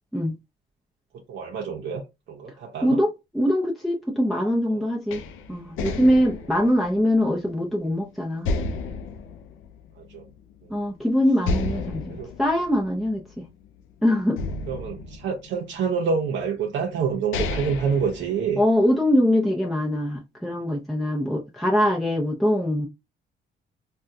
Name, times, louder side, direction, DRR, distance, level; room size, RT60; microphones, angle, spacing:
voice 1, 1.3-2.0 2.3-3.0 4.7-4.9 10.0-10.3 12.1-12.3 14.7-18.6, right 6 dB, 70° right, 0.7 m, -27 dB
voice 2, 2.8-5.2 5.5-8.5 10.7-13.5 14.0-14.4 18.6-22.9, equal, ahead, 0.6 m, -23 dB
sound 1, 5.1-7.9 8.4-10.4 10.7-10.8 11.4-13.8 14.4-15.9 16.7-16.8 17.1-18.9, left 3 dB, 85° left, 0.5 m, -32 dB
3.4 x 2.3 x 2.6 m
cardioid pair, 90°, 20 cm